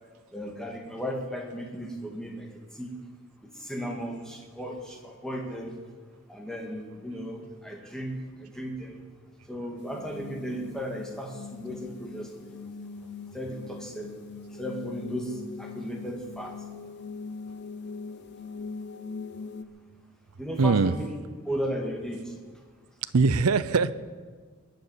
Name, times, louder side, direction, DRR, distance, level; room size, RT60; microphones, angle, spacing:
voice 1, 0.3-3.0 3.4-5.8 6.3-9.0 9.5-12.6 13.3-14.1 14.5-16.6 20.4-21.1 21.4-22.3, equal, 5° left, 1 dB, 2.0 m, -35 dB
sound 1, 9.8-19.6, left 4 dB, 50° left, 0.7 m, -41 dB
voice 2, 20.6-21.0 23.1-23.9, right 4 dB, 90° right, 14 dB, 0.6 m, -21 dB
21.0 x 7.0 x 9.6 m, 1.5 s
head